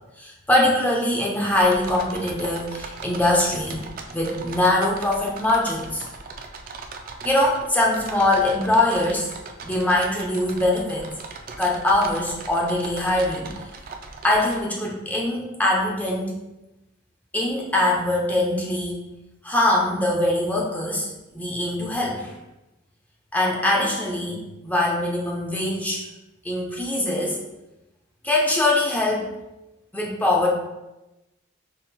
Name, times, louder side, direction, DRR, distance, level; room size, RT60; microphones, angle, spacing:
voice 1, 0.2-3.8 4.1-6.0 7.2-9.3 9.6-11.1 11.6-13.5 14.2-16.4 17.3-19.0 19.4-22.3 23.3-26.0 26.4-27.4 28.2-29.3 29.9-30.5, left 1 dB, 10° left, -3 dB, 0.7 m, -22 dB
sound 1, 1.5-14.6, right 4 dB, 45° right, 0.4 m, -39 dB
5.4 x 2.8 x 2.2 m, 0.99 s
head